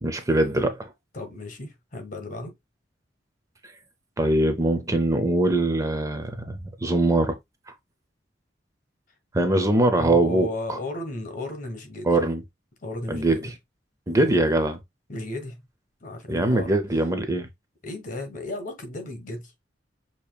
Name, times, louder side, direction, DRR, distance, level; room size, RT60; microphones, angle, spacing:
voice 1, 0.0-0.9 4.2-7.4 9.3-10.8 12.0-12.4 13.1-13.5 14.1-14.8 16.3-17.5, right 1 dB, 20° right, 0.5 m, -22 dB
voice 2, 1.1-2.5 10.0-12.2 12.8-13.5 14.1-14.4 15.1-15.6 16.0-16.7 17.8-19.5, left 1 dB, 45° left, 1.3 m, -34 dB
6.7 x 2.8 x 2.3 m
head